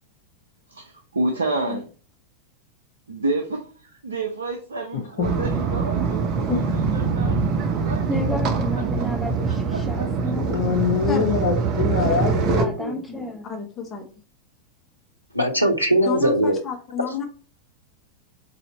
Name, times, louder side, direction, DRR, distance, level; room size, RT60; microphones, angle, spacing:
voice 1, 0.7-1.8 3.1-8.0 9.0-9.1 9.5-10.3, right 2 dB, 75° right, 0.6 m, -30 dB
voice 2, 4.9-5.3 6.5-6.6 10.3-13.2, left 6 dB, 50° left, 0.9 m, -24 dB
sound 1, 5.2-12.7, right 5 dB, 35° right, 0.7 m, -24 dB
voice 3, 8.1-10.7 12.6-13.5, left 1 dB, ahead, 0.7 m, -31 dB
voice 4, 13.4-14.1 16.1-17.2, left 6 dB, 25° left, 1.0 m, -30 dB
voice 5, 15.3-16.6, right 1 dB, 90° left, 0.6 m, -19 dB
4.2 x 2.7 x 4.2 m
figure-of-eight pair, 90°, 0 cm